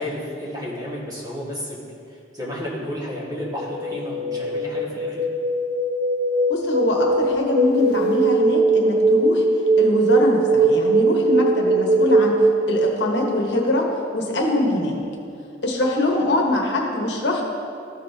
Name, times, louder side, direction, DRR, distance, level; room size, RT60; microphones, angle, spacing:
voice 1, 0.0-1.8 2.1-5.2, left 1 dB, 20° right, -6 dB, 1.7 m, -32 dB
sound 1, 3.4-13.3, right 2 dB, 60° right, 0.6 m, -20 dB
voice 2, 6.5-9.4 9.8-12.4 12.7-13.9 14.1-15.0 15.6-17.4, left 2 dB, 70° left, 0 dB, 1.1 m, -23 dB
13.5 x 5.3 x 2.7 m, 2.4 s
head